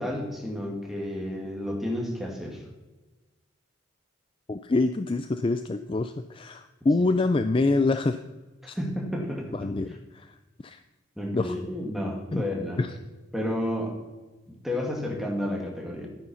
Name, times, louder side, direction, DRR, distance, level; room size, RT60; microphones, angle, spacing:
voice 1, 0.0-2.6 8.6-9.7 11.2-12.8 13.3-13.9 14.5-16.1, left 1 dB, ahead, -1 dB, 2.2 m, -31 dB
voice 2, 4.5-8.2 8.7-8.8 9.5-10.4 10.6-10.8 11.3-11.6 12.3-12.4 12.8-12.9, left 3 dB, 25° left, 9 dB, 0.4 m, -26 dB
12.5 x 9.6 x 5.7 m, 1.2 s
head